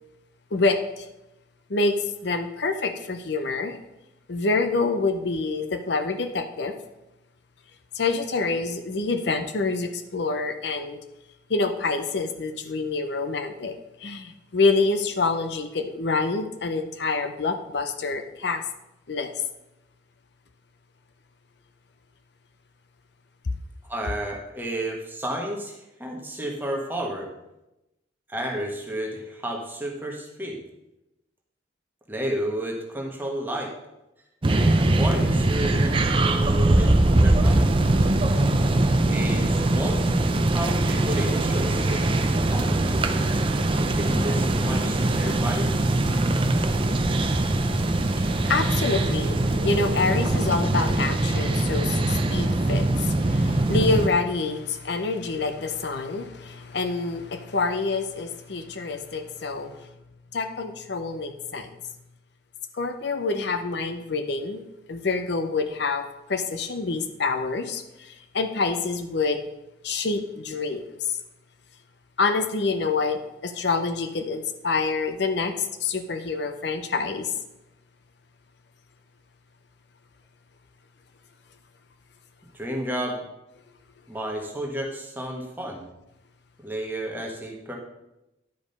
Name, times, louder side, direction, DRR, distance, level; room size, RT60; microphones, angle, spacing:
voice 1, 0.5-1.1 1.7-3.8 4.3-6.7 7.9-11.0 11.5-13.7 14.0-18.6 19.1-19.3 47.7-59.9 60.3-61.7 62.7-64.6 64.9-66.0 66.3-69.5 69.8-71.2 72.2-77.3, left 3 dB, 60° left, 7 dB, 0.6 m, -27 dB
voice 2, 23.9-27.3 28.3-30.6 32.1-33.7 34.4-37.0 37.2-37.8 39.1-40.1 40.5-43.0 43.7-45.7 82.5-83.3 84.1-85.9 86.6-87.8, right 1 dB, 10° right, 0 dB, 1.3 m, -32 dB
sound 1, 34.4-54.1, right 2 dB, 25° right, 0.5 m, -22 dB
10.5 x 5.1 x 5.4 m, 0.94 s
head